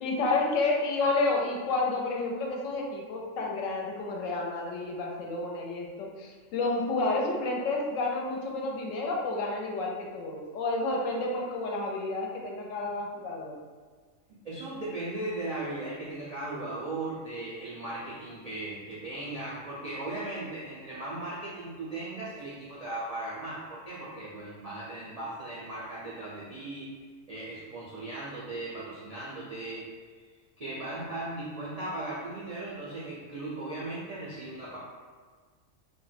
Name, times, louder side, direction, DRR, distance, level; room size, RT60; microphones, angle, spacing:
voice 1, 0.0-13.5, left 2 dB, 75° left, 0 dB, 0.9 m, -30 dB
voice 2, 14.3-26.9 27.3-29.9 30.6-34.8, right 2 dB, 55° right, -8 dB, 0.4 m, -37 dB
2.4 x 2.1 x 4.0 m, 1.5 s
omnidirectional pair, 1.4 m